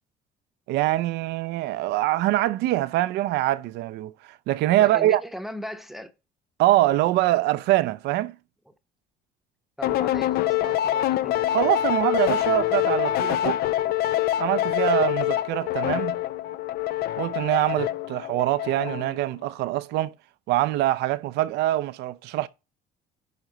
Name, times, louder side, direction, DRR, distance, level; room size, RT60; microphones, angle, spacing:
voice 1, 0.7-4.1 4.5-5.2 6.6-8.3 11.5-13.6 14.4-16.2 17.2-20.1 20.5-22.5, right 15 dB, 85° right, 0.5 m, -24 dB
voice 2, 4.8-6.1 8.7-8.8 9.8-11.4, equal, ahead, 0.8 m, -37 dB
sound 1, 9.8-19.2, left 13 dB, 65° left, 0.5 m, -25 dB
11.0 x 4.4 x 3.9 m
cardioid pair, 110°, 17 cm